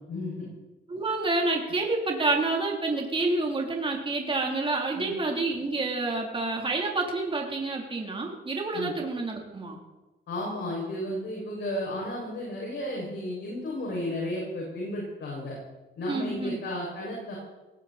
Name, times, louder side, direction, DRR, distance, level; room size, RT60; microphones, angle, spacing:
voice 1, 0.1-0.5 4.9-5.1 8.7-8.9 10.3-15.6 16.0-17.4, left 1 dB, 65° left, -2 dB, 6.5 m, -33 dB
voice 2, 0.9-9.8 16.1-16.6, right 3 dB, 25° right, 0 dB, 3.5 m, -28 dB
18.5 x 17.5 x 4.3 m, 1.1 s
cardioid pair, 90°, 20 cm